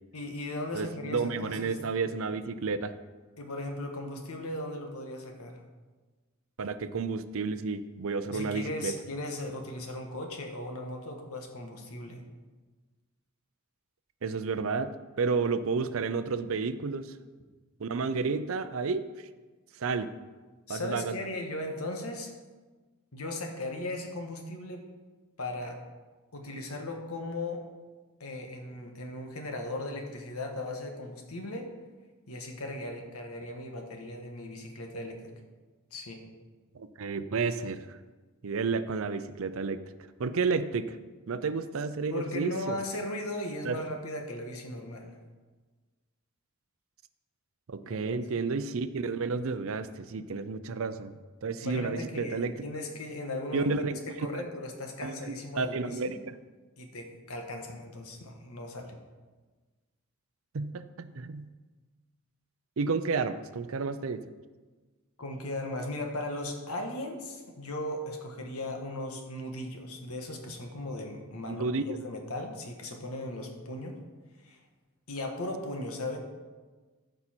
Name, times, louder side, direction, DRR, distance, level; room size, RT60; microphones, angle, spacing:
voice 1, 0.1-1.8 3.4-5.6 8.3-12.2 20.7-22.3 23.1-24.8 25.4-25.8 26.3-27.6 28.2-31.7 32.3-35.3 35.9-36.2 42.1-45.2 47.8-48.2 51.6-53.7 54.1-56.2 56.8-59.0 65.2-74.0 74.4-74.6 75.1-76.2, left 1 dB, 80° left, 3 dB, 1.5 m, -37 dB
voice 2, 0.7-2.9 6.6-8.9 14.2-17.1 17.8-19.0 19.8-20.1 20.7-21.1 36.7-38.0 38.4-39.8 40.2-41.0 41.3-42.8 43.6-43.8 47.7-52.5 53.5-54.0 55.0-56.3 60.5-61.5 62.8-64.2 71.5-72.0, right 4 dB, 65° right, 12 dB, 0.5 m, -31 dB
14.0 x 5.5 x 4.4 m, 1.3 s
head